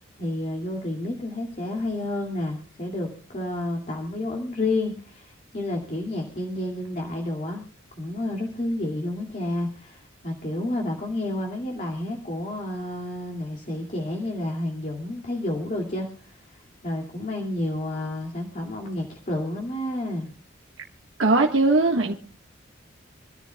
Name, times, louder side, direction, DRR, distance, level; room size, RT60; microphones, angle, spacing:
voice 1, 0.2-7.6 8.0-20.3, left 1 dB, 40° left, 2.3 m, -30 dB
voice 2, 21.2-22.1, right 2 dB, 65° right, 1.5 m, -19 dB
26.5 x 13.5 x 2.3 m
head